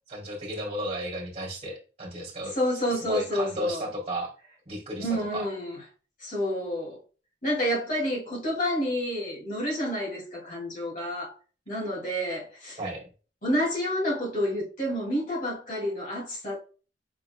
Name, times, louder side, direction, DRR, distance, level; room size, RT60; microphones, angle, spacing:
voice 1, 0.1-2.5 2.9-4.3 4.7-5.5 12.8-13.1, equal, 35° right, 2.0 m, -34 dB
voice 2, 2.5-3.8 5.0-5.8 6.2-7.0 7.4-11.3 11.7-12.8 13.4-16.6, equal, 50° left, 2.5 m, -29 dB
5.6 x 3.9 x 2.2 m
head